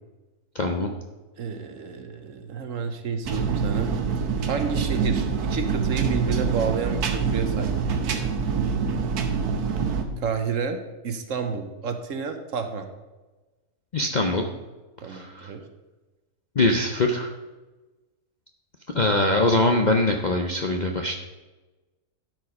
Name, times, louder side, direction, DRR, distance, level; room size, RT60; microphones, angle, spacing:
voice 1, 0.5-0.9 13.9-14.4 15.1-15.5 16.6-17.3 18.9-21.2, left 2 dB, 50° left, 3 dB, 0.5 m, -22 dB
voice 2, 1.3-3.9 4.5-8.0 10.2-12.9 15.0-15.6, right 5 dB, 60° right, 7 dB, 1.2 m, -30 dB
sound 1, 3.2-10.0, right 6 dB, 85° right, 1.4 m, -25 dB
12.0 x 4.9 x 5.2 m, 1.2 s
omnidirectional pair, 1.6 m